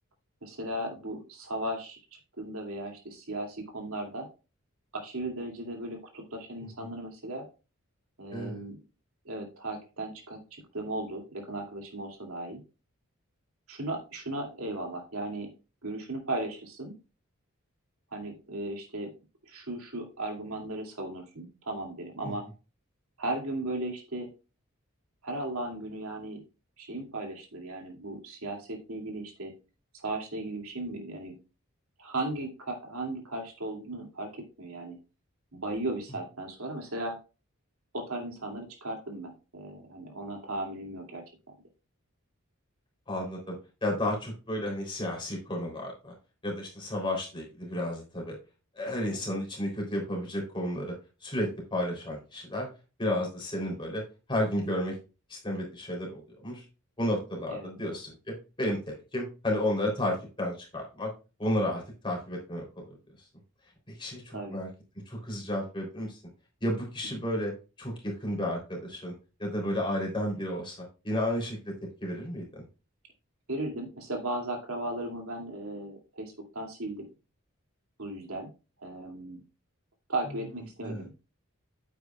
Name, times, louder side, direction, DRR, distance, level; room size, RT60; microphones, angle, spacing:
voice 1, 0.4-2.0 2.4-4.3 4.9-7.5 8.2-8.8 9.2-12.6 13.7-15.5 15.8-16.9 18.1-19.1 19.5-22.4 23.2-24.3 25.2-26.4 26.8-29.5 29.9-31.3 32.0-35.0 35.5-37.1 37.9-41.2 57.5-57.7 64.3-64.6 73.5-77.1 78.0-78.5 78.8-79.4 80.1-81.1, right 1 dB, 85° right, 1 dB, 2.7 m, -36 dB
voice 2, 8.3-8.6 22.2-22.3 43.1-43.6 43.8-46.1 46.4-48.4 48.8-50.9 51.2-52.7 53.0-54.0 54.3-54.9 55.3-56.6 57.0-58.1 58.6-61.1 61.4-63.0 63.9-64.7 65.1-66.2 66.6-67.5 67.8-69.1 69.4-70.8 71.0-71.7 72.0-72.6 80.8-81.0, left 1 dB, 25° left, -1 dB, 3.6 m, -32 dB
9.4 x 8.2 x 2.4 m, 0.31 s
head